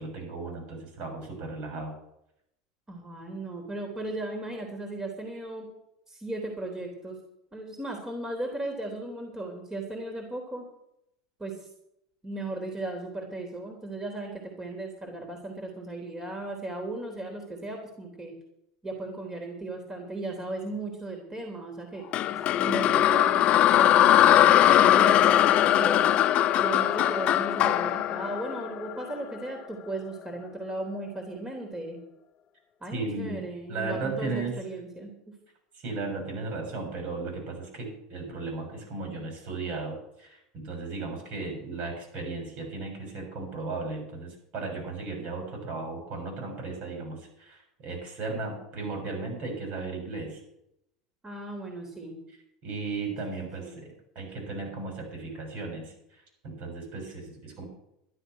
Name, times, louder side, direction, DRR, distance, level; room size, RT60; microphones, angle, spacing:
voice 1, 0.0-1.9 32.9-33.4 33.7-34.6 35.7-50.4 52.6-57.6, right 3 dB, 55° right, 2 dB, 7.5 m, -35 dB
voice 2, 2.9-5.7 6.1-7.2 7.5-10.7 11.4-11.6 12.2-18.3 18.8-23.4 23.7-26.0 26.5-32.0 32.8-35.1 51.2-52.2 53.6-53.7, right 2 dB, 15° right, 2 dB, 3.6 m, -36 dB
sound 1, 22.1-29.3, left 12 dB, 45° left, 0.7 m, -21 dB
12.5 x 11.0 x 6.4 m, 0.80 s
hypercardioid pair, 90°, 3 cm